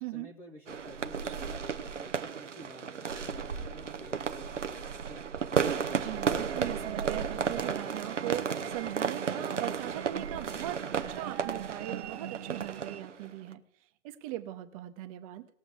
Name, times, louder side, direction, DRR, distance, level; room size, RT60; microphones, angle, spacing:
voice 1, 0.1-5.2, left 1 dB, 10° left, 0 dB, 0.4 m, -51 dB
sound 1, 0.7-13.5, right 6 dB, 85° right, 0.9 m, -34 dB
voice 2, 5.9-13.6 14.0-15.5, right 15 dB, 30° right, 9 dB, 0.9 m, -40 dB
sound 2, 6.1-13.0, right 10 dB, 65° right, 0.5 m, -43 dB
20.0 x 7.1 x 3.4 m, 0.68 s
figure-of-eight pair, 120°, 36 cm